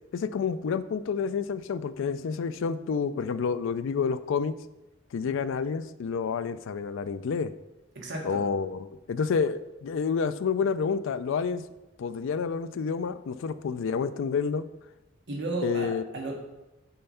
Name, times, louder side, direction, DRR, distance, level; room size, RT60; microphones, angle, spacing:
voice 1, 0.1-4.5 5.1-7.5 8.2-11.6 12.0-14.7 15.6-16.0, left 5 dB, 65° left, 14 dB, 0.4 m, -29 dB
voice 2, 7.9-8.4 15.3-16.5, right 2 dB, 60° right, 1 dB, 1.2 m, -34 dB
5.5 x 4.4 x 5.5 m, 1.0 s
head